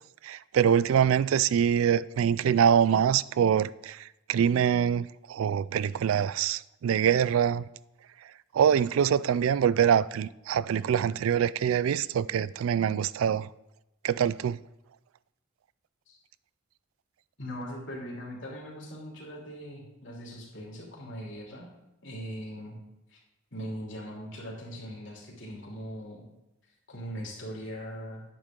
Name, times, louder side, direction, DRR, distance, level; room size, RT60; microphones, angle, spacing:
voice 1, 0.2-7.6 8.5-13.5 14.0-14.6, right 8 dB, 85° right, 0.3 m, -24 dB
voice 2, 17.4-21.7 22.0-22.8 23.1-23.2 23.5-26.2 26.6-28.2, equal, 65° left, 3.1 m, -40 dB
10.5 x 9.0 x 3.7 m
head